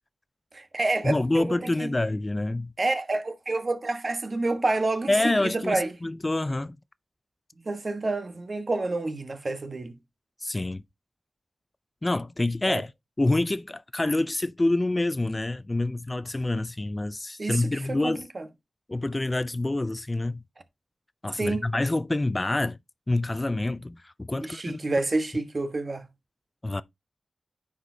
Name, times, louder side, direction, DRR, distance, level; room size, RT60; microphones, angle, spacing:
voice 1, 0.5-1.9 2.8-6.0 7.6-10.0 12.7-12.8 17.4-18.4 21.4-21.7 24.4-26.1, right 2 dB, 50° right, 1.2 m, -29 dB
voice 2, 1.0-2.7 5.1-6.8 10.4-10.8 12.0-12.9 13.2-18.3 18.9-20.4 21.2-22.8 23.1-24.9 26.6-26.8, left 2 dB, 30° left, 0.4 m, -27 dB
9.5 x 5.0 x 2.7 m
cardioid pair, 55°, 0 cm